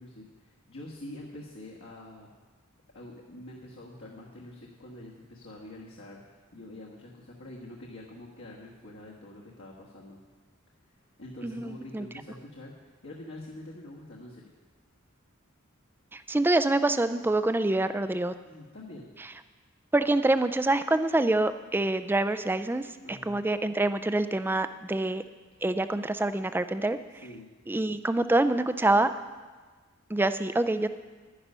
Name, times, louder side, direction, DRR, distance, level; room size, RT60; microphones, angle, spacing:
voice 1, 0.0-2.3 2.9-10.2 11.2-14.5 18.4-19.1 23.0-23.4 27.2-27.5, left 1 dB, 65° left, -3 dB, 1.4 m, -46 dB
voice 2, 11.4-12.0 16.1-18.3 19.9-25.2 25.6-27.0 27.7-29.1 30.1-30.9, right 2 dB, 10° right, 11 dB, 0.3 m, -26 dB
11.0 x 10.0 x 5.5 m, 1.4 s
head